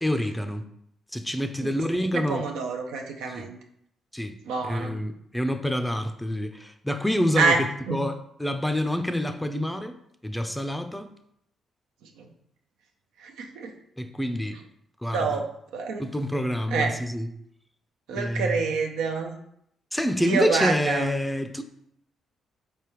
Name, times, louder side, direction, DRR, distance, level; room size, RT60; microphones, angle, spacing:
voice 1, 0.0-0.6 1.1-2.4 3.3-3.5 4.1-4.4 4.6-7.6 7.9-10.0 10.2-11.1 14.0-14.6 15.0-15.4 16.0-17.3 18.2-18.6 19.9-21.6, equal, 5° left, 0.5 m, -27 dB
voice 2, 2.1-3.6 4.5-5.0 7.4-8.0 12.0-12.3 13.2-13.7 15.1-16.1 16.7-16.9 18.1-19.3 20.2-21.1, right 4 dB, 75° right, 0.5 m, -27 dB
4.4 x 3.3 x 3.0 m
hypercardioid pair, 45°, 0 cm